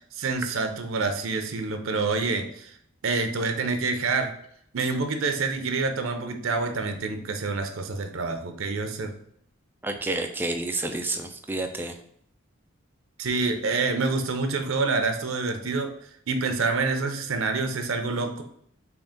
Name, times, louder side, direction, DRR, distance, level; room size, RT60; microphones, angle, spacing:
voice 1, 0.1-2.7 3.0-4.3 4.7-9.1 13.2-15.9 16.3-18.4, right 3 dB, 85° right, 6 dB, 0.6 m, -27 dB
voice 2, 9.8-11.9, right 2 dB, 10° right, 4 dB, 0.3 m, -29 dB
3.8 x 2.5 x 3.6 m, 0.67 s
head